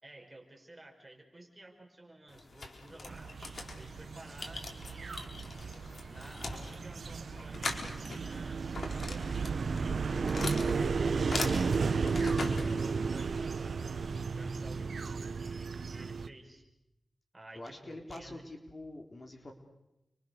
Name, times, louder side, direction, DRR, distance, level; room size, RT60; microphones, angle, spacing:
voice 1, 0.0-3.4 3.8-5.5 6.1-13.9 14.3-16.6 17.3-18.4, right 2 dB, 20° right, 3 dB, 5.8 m, -53 dB
sound 1, 2.3-13.4, left 3 dB, 55° left, 4.1 m, -42 dB
sound 2, 3.1-16.3, right 5 dB, 70° right, 1.2 m, -34 dB
voice 2, 14.3-14.8 17.6-19.5, left 2 dB, 35° left, 3 dB, 4.1 m, -47 dB
29.5 x 24.5 x 6.8 m, 0.91 s
wide cardioid pair, 80°, 0 cm